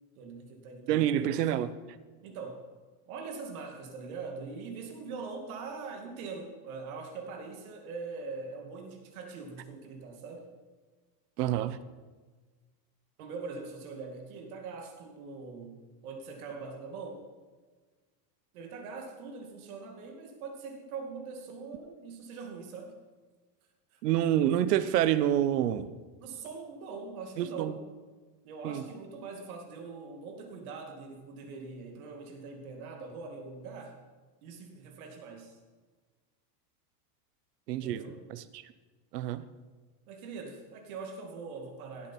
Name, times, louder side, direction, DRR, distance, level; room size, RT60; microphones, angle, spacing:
voice 1, 0.2-1.4 2.2-2.6 3.1-10.5 13.2-17.3 18.5-23.0 23.9-24.0 26.2-27.9 28.4-34.0 34.4-35.5 37.8-38.2 40.1-42.1, right 4 dB, 65° right, 2.6 m, -42 dB
voice 2, 0.9-1.8 11.4-11.8 24.0-25.9 27.4-27.7 28.6-28.8 37.7-38.0 38.3-38.6 39.1-39.4, right 11 dB, 85° right, 1.0 m, -27 dB
17.0 x 8.6 x 4.5 m
supercardioid pair, 160°, 47 cm